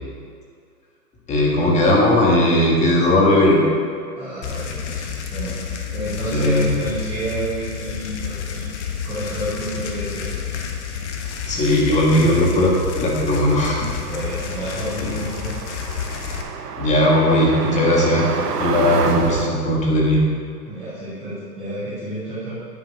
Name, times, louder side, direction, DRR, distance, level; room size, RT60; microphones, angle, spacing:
voice 1, 1.3-3.6 6.3-6.7 11.4-13.9 15.0-15.1 16.8-18.2 18.6-20.2, left 1 dB, 15° left, -2 dB, 1.5 m, -17 dB
voice 2, 4.1-5.5 5.9-8.7 9.0-10.3 12.2-12.4 14.1-15.5 20.6-22.6, right 1 dB, 5° right, -13 dB, 0.4 m, -30 dB
sound 1, 4.4-16.4, left 7 dB, 50° left, 1.1 m, -30 dB
sound 2, 14.0-19.5, right 6 dB, 75° right, 1.0 m, -29 dB
9.5 x 5.1 x 6.4 m, 2.2 s
hypercardioid pair, 140°, 47 cm